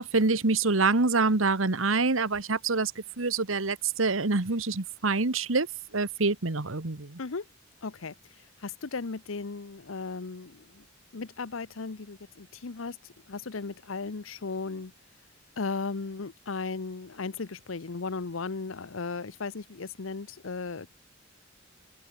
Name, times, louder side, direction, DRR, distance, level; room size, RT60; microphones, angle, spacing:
voice 1, 0.0-5.7 5.9-7.2, right 3 dB, 85° right, 1.5 m, -26 dB
voice 2, 7.8-8.1 8.6-10.8 11.1-13.0 13.3-14.9 15.6-20.9, left 4 dB, 85° left, 0.9 m, -36 dB
open air
head